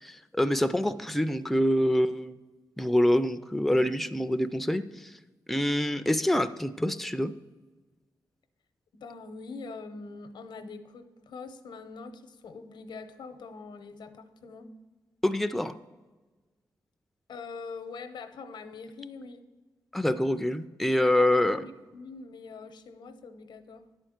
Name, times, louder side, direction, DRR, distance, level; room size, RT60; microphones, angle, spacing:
voice 1, 0.0-2.4 2.8-5.1 5.5-7.3 15.2-15.7 19.9-21.6, left 1 dB, ahead, 10 dB, 0.3 m, -26 dB
voice 2, 8.9-14.7 17.3-19.4 21.2-23.8, left 4 dB, 90° left, 9 dB, 0.7 m, -43 dB
10.5 x 4.5 x 6.4 m, 1.3 s
wide cardioid pair, 120°, 8 cm